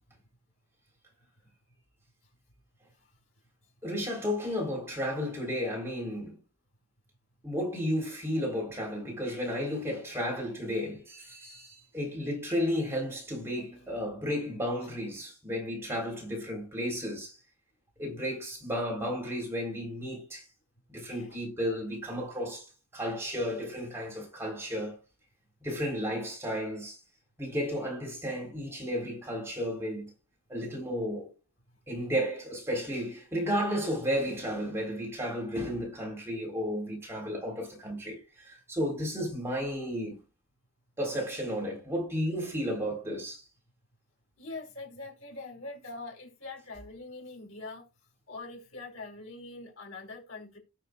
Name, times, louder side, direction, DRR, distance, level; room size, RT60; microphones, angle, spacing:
voice 1, 3.8-6.4 7.4-17.4 18.0-20.5 20.9-22.7 22.9-25.0 25.6-27.0 27.4-30.1 30.5-31.3 31.9-40.2 41.0-43.4, equal, 10° right, 3.8 m, -33 dB
voice 2, 44.4-47.9 48.3-50.6, left 3 dB, 80° left, 4.7 m, -43 dB
18.0 x 6.6 x 2.4 m
head